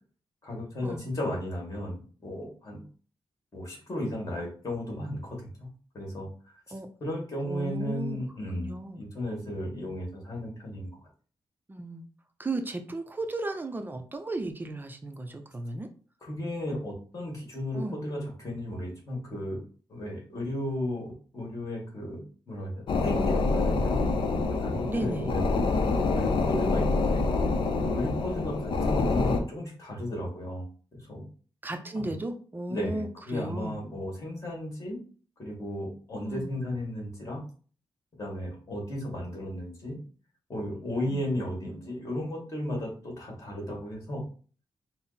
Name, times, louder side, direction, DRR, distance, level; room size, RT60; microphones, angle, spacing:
voice 1, 0.4-2.8 3.5-5.7 5.9-6.3 7.0-11.1 16.2-19.6 19.9-24.0 24.5-25.6 26.1-27.2 27.8-30.7 31.1-31.2 32.0-32.1 32.7-35.0 35.4-37.4 38.2-40.0 40.5-44.2, left 1 dB, 35° left, -1 dB, 1.8 m, -34 dB
voice 2, 7.4-8.2 8.5-9.0 11.7-12.0 12.4-15.9 17.7-18.0 24.9-25.4 28.2-28.5 31.6-33.8 36.2-36.5 41.1-41.3, right 2 dB, 20° right, 7 dB, 0.5 m, -35 dB
sound 1, 22.9-29.4, left 3 dB, 65° left, 0.6 m, -26 dB
4.0 x 2.0 x 4.0 m, 0.40 s
wide cardioid pair, 125°, 9 cm